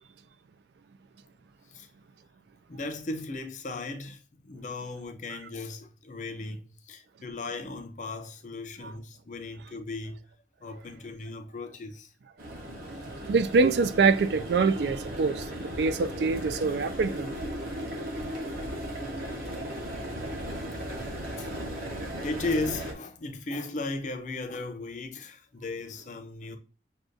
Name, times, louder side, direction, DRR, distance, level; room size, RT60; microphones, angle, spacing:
voice 1, 2.7-10.2 10.6-12.1 12.5-12.6 15.7-15.8 20.7-20.8 21.4-21.5 22.1-26.6, left 2 dB, 40° left, 0.5 m, -36 dB
sound 1, 12.4-22.9, equal, 50° right, 0.9 m, -36 dB
voice 2, 13.3-17.3 20.9-21.1 22.0-22.1, right 4 dB, 65° right, 0.3 m, -25 dB
6.2 x 2.3 x 2.5 m
head